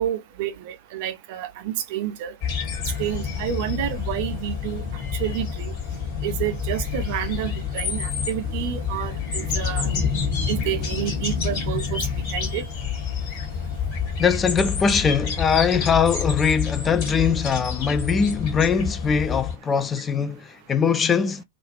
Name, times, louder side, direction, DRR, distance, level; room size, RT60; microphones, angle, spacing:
voice 1, 0.0-2.3 3.0-4.8 5.2-5.7 6.2-9.9 10.5-12.0 12.3-12.6, right 11 dB, 50° right, 0.6 m, -29 dB
sound 1, 2.4-19.6, left 6 dB, 45° left, 1.4 m, -28 dB
voice 2, 14.2-21.4, left 6 dB, 20° left, 0.3 m, -22 dB
2.5 x 2.4 x 3.0 m
figure-of-eight pair, 90°, 0 cm